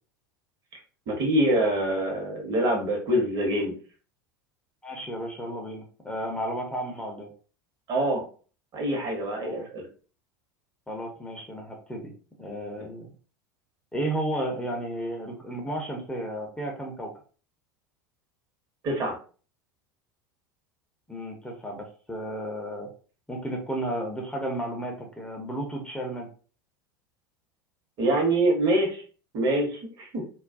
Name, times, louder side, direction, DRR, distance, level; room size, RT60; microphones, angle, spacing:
voice 1, 1.1-3.7 7.9-8.2 8.7-9.9 12.8-12.9 18.8-19.1 28.0-29.0 29.3-30.2, right 1 dB, 40° right, 1 dB, 0.9 m, -25 dB
voice 2, 4.8-7.3 9.4-9.7 10.9-12.1 12.4-13.1 13.9-17.1 21.1-22.9 23.3-26.3, right 1 dB, 10° left, 1 dB, 0.6 m, -33 dB
2.3 x 2.2 x 2.4 m, 0.39 s
figure-of-eight pair, 80°, 11 cm